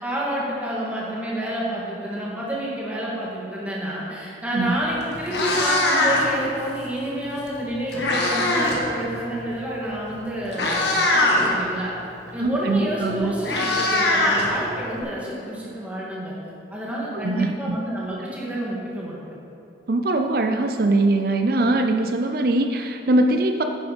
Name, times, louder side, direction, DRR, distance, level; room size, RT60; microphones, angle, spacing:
voice 1, 0.0-11.9 12.3-16.3 16.7-19.4, right 1 dB, 10° right, -6 dB, 2.0 m, -29 dB
Meow, 4.7-4.8 5.1-6.4 7.5-8.8 9.1-9.4 10.1-10.2 10.5-11.4 12.8-12.9 13.1-15.0, left 2 dB, 70° left, 1.8 m, -21 dB
voice 2, 12.4-13.3 17.1-17.8 19.9-23.6, right 2 dB, 55° right, 5 dB, 0.5 m, -22 dB
10.0 x 9.9 x 5.3 m, 2.8 s
head